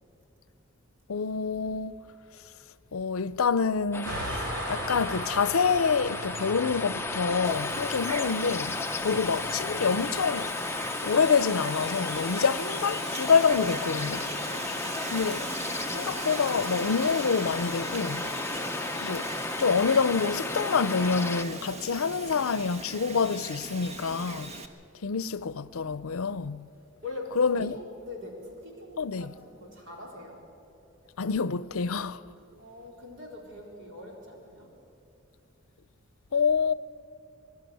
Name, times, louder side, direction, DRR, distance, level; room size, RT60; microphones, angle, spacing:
voice 1, 1.1-1.9 2.9-4.1 4.7-8.8 9.0-10.5 11.0-14.3 15.1-15.4 15.9-18.2 19.0-19.3 19.6-24.5 25.0-26.6 27.3-27.7 29.0-29.3 31.2-32.2 36.3-36.7, left 5 dB, 85° left, 0.6 m, -27 dB
sound 1, 3.9-21.4, left 3 dB, 10° left, 0.7 m, -34 dB
sound 2, 4.0-12.1, right 1 dB, 85° right, 3.4 m, -39 dB
Wind, 7.4-24.7, right 3 dB, 30° right, 1.2 m, -39 dB
voice 2, 25.6-26.4 27.0-30.4 31.0-31.3 32.4-34.7, left 1 dB, 60° right, 4.2 m, -43 dB
23.0 x 12.0 x 9.3 m
head